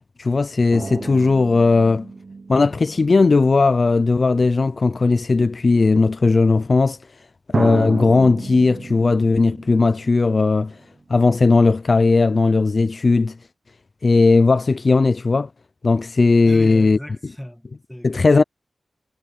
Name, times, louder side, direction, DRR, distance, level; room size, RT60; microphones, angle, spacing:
voice 1, 0.2-2.1 2.5-7.0 7.5-10.8 11.1-13.4 14.0-15.5 15.8-17.0 18.0-18.4, left 3 dB, 45° left, 0.5 m, -17 dB
sound 1, 0.7-4.6 5.5-5.6 7.5-10.9 11.1-11.2, right 3 dB, 45° right, 1.3 m, -32 dB
voice 2, 16.4-18.4, equal, 5° left, 1.8 m, -36 dB
wide cardioid pair, 110°, 0 cm